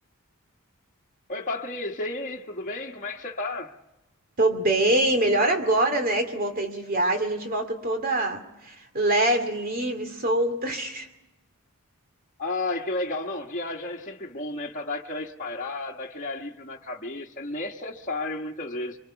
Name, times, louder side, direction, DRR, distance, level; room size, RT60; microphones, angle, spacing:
voice 1, 1.3-3.8 12.4-19.0, left 2 dB, 35° left, 1.4 m, -32 dB
voice 2, 4.4-11.1, right 1 dB, 40° right, 2.6 m, -24 dB
25.0 x 24.5 x 5.9 m
head